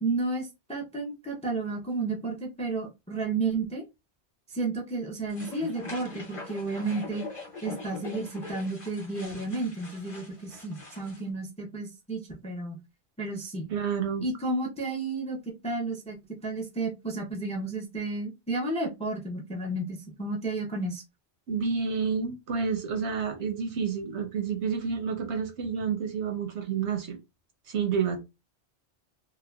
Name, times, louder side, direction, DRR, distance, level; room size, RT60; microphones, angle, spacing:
voice 1, 0.0-3.8 4.5-7.2 7.6-12.8 13.2-13.6 14.2-21.0, right 3 dB, 10° left, 0.4 m, -32 dB
sound 1, 5.3-11.2, left 3 dB, 35° left, 0.8 m, -43 dB
voice 2, 13.7-14.2 21.5-27.2 27.7-28.2, right 6 dB, 85° right, 1.0 m, -29 dB
2.8 x 2.2 x 2.2 m
omnidirectional pair, 1.1 m